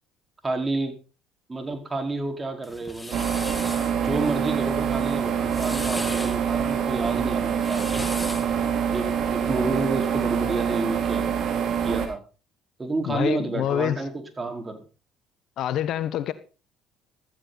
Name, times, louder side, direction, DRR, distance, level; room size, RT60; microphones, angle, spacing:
voice 1, 0.4-0.9 1.5-3.2 3.9-8.1 8.9-11.4 11.8-12.2 12.8-14.8, right 2 dB, 25° right, 4.4 m, -30 dB
sound 1, 2.6-3.9 5.3-6.4 7.5-8.6, left 1 dB, 10° left, 2.5 m, -36 dB
sound 2, 3.1-12.1, right 8 dB, 60° right, 3.6 m, -25 dB
voice 2, 13.0-14.0 15.6-16.3, left 11 dB, 65° left, 1.2 m, -26 dB
15.5 x 14.0 x 4.1 m
supercardioid pair, 70°, 0 cm